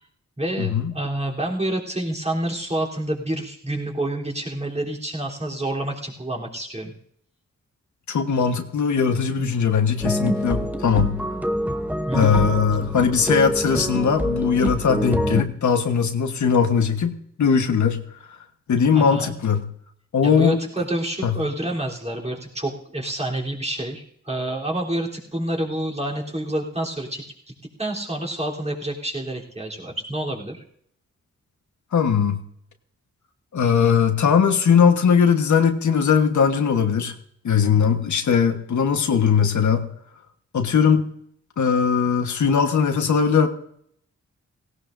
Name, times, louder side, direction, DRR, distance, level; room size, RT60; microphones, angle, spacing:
voice 1, 0.4-6.9 12.1-12.5 18.9-19.3 20.2-27.2 27.8-30.6, right 1 dB, 20° right, -3 dB, 3.5 m, -28 dB
voice 2, 8.1-11.2 12.1-18.0 18.7-19.6 20.1-20.6 21.2-21.3 31.9-32.4 33.5-37.1 37.4-39.8 40.5-41.1 41.6-43.5, left 6 dB, 75° left, 6 dB, 1.4 m, -19 dB
sound 1, 10.0-15.4, equal, 5° right, 0.9 m, -25 dB
17.5 x 17.5 x 2.6 m, 0.69 s
wide cardioid pair, 95°, 29 cm